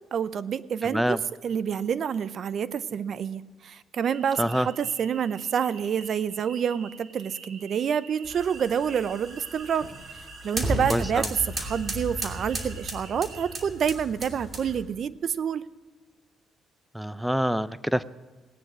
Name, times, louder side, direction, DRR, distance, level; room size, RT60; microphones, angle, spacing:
voice 1, 0.1-9.9 10.4-15.6, right 7 dB, 60° right, 16 dB, 0.6 m, -28 dB
voice 2, 0.8-1.2 4.4-4.7 10.9-11.3 16.9-18.0, equal, 5° right, 16 dB, 0.5 m, -26 dB
sound 1, 4.0-13.6, right 5 dB, 80° right, 2.3 m, -48 dB
sound 2, 8.2-14.9, right 1 dB, 30° right, 2.6 m, -35 dB
18.0 x 9.8 x 6.2 m, 1.4 s
cardioid pair, 90°, 0 cm